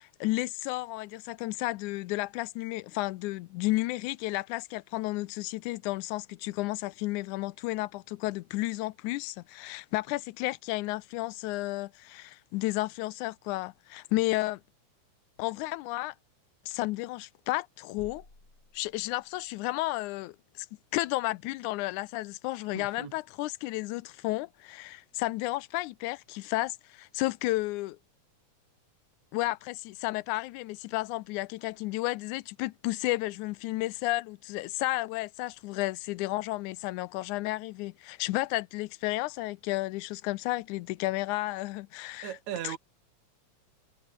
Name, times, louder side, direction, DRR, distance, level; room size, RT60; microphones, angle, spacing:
voice 1, 0.0-14.6 15.4-16.2 16.7-18.2 18.7-20.7 20.9-28.0 29.3-42.4 42.6-42.8, left 19 dB, 85° left, 2.1 m, -32 dB
sound 1, 18.0-19.6, left 2 dB, 35° left, 7.4 m, -53 dB
voice 2, 22.7-23.1 42.2-42.8, right 11 dB, 70° right, 2.5 m, -37 dB
omnidirectional pair, 3.4 m